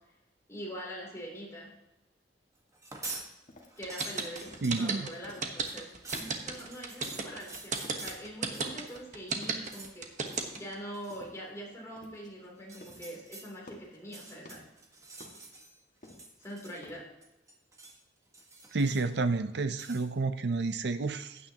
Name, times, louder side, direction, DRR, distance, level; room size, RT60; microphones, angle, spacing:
voice 1, 0.5-1.7 3.8-10.1 10.5-14.6 16.4-17.1, equal, 15° left, -3 dB, 3.1 m, -43 dB
sound 1, 2.7-3.3 3.6-9.0 9.3-9.9 10.3-10.6 10.9-11.2 12.6-13.5 14.0-15.7 16.0-17.0 17.2-18.0 18.3-19.2 19.7-20.1, right 2 dB, 15° right, 1.3 m, -47 dB
sound 2, 3.5-5.8 6.1-6.7 7.0-7.4 7.7-8.2 8.5-9.1 9.4-10.7 11.1-11.6 12.0-12.4 12.6-13.2 13.5-14.8 15.2-17.0, left 1 dB, 45° left, 1.9 m, -53 dB
sound 3, 3.8-10.7, right 5 dB, 40° right, 1.1 m, -33 dB
voice 2, 4.6-5.1 18.7-21.4, right 3 dB, 65° right, 10 dB, 0.6 m, -30 dB
15.0 x 9.3 x 2.9 m, 0.95 s
head